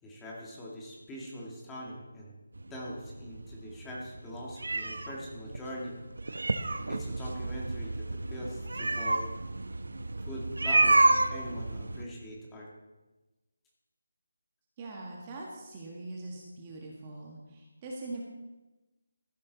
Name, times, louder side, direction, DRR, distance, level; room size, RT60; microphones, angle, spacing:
voice 1, 0.0-2.4 2.7-5.9 6.9-9.2 10.2-12.7, equal, 5° left, -4 dB, 1.9 m, -42 dB
sound 1, 2.5-12.0, right 2 dB, 85° right, 1.0 m, -29 dB
voice 2, 14.8-18.2, right 2 dB, 20° right, -2 dB, 1.6 m, -42 dB
14.5 x 11.5 x 4.0 m, 1.1 s
figure-of-eight pair, 175°, 0 cm